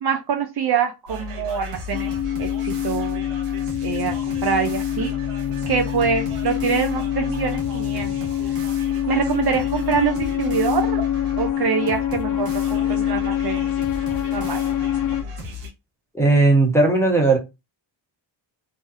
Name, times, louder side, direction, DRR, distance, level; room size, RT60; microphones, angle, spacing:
voice 1, 0.0-2.1 2.4-3.2 3.8-5.1 5.7-8.1 9.1-11.0 11.4-13.7 14.3-14.6, right 7 dB, 50° right, 0.6 m, -25 dB
sound 1, 1.1-15.7, left 3 dB, 90° right, 1.0 m, -34 dB
sound 2, 1.9-15.2, left 11 dB, 45° left, 0.4 m, -25 dB
voice 2, 16.1-17.4, right 2 dB, 5° left, 1.1 m, -16 dB
2.6 x 2.4 x 2.5 m
cardioid pair, 60°, 49 cm